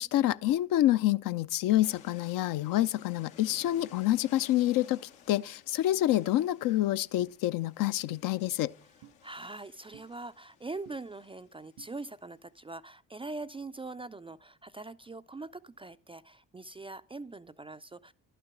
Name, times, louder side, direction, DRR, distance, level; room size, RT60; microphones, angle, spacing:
voice 1, 0.0-5.0 5.3-8.7, left 14 dB, 50° left, 0.5 m, -27 dB
sound 1, 1.8-12.1, left 8 dB, 75° left, 1.1 m, -57 dB
sound 2, 7.2-7.3 8.1-8.2 9.0-9.2 9.9-10.1 10.9-11.0 11.8-11.9, right 12 dB, 50° right, 0.7 m, -53 dB
voice 2, 9.2-18.1, right 3 dB, 15° right, 0.4 m, -42 dB
12.0 x 6.8 x 6.0 m
figure-of-eight pair, 45°, 42 cm